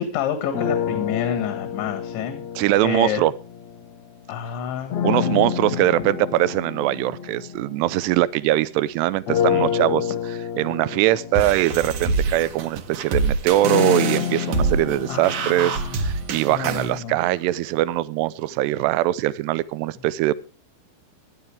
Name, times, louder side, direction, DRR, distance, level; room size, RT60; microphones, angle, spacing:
voice 1, 0.0-2.4 2.8-3.2 4.3-5.6 9.5-9.7 15.1-15.8 16.5-17.2, left 8 dB, 85° left, 7 dB, 4.0 m, -29 dB
sound 1, 0.5-4.1 4.9-8.7 9.3-17.2, left 8 dB, 60° left, 2.0 m, -29 dB
voice 2, 2.6-3.3 5.0-10.1 10.6-20.3, right 15 dB, 80° right, 18 dB, 2.7 m, -22 dB
sound 2, 11.4-16.9, right 4 dB, 60° right, 2.7 m, -26 dB
17.5 x 11.0 x 3.5 m, 0.36 s
omnidirectional pair, 5.1 m